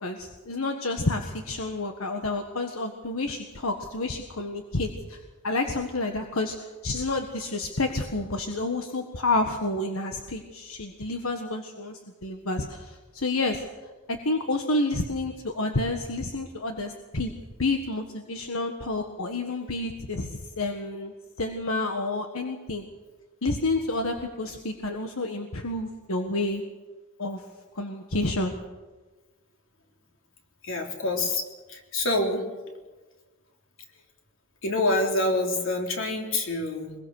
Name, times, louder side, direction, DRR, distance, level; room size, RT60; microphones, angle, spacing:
voice 1, 0.0-13.6 14.1-17.3 17.6-21.1 21.4-22.8 23.4-26.6 27.2-27.4 27.7-28.6, left 2 dB, 85° left, 4 dB, 1.6 m, -29 dB
voice 2, 30.6-32.4 34.6-37.0, left 2 dB, 65° left, 2 dB, 3.5 m, -26 dB
23.5 x 22.0 x 6.5 m, 1.3 s
head